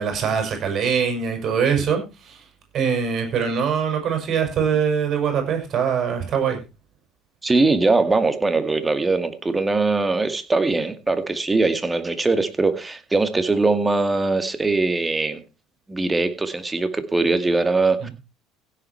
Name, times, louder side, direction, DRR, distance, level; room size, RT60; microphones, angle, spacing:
voice 1, 0.0-2.4 2.7-6.6, right 7 dB, 50° right, 6.2 m, -23 dB
voice 2, 7.4-15.4 15.9-18.1, right 3 dB, 20° right, 2.1 m, -21 dB
16.0 x 7.6 x 4.6 m
hypercardioid pair, 75°, 0 cm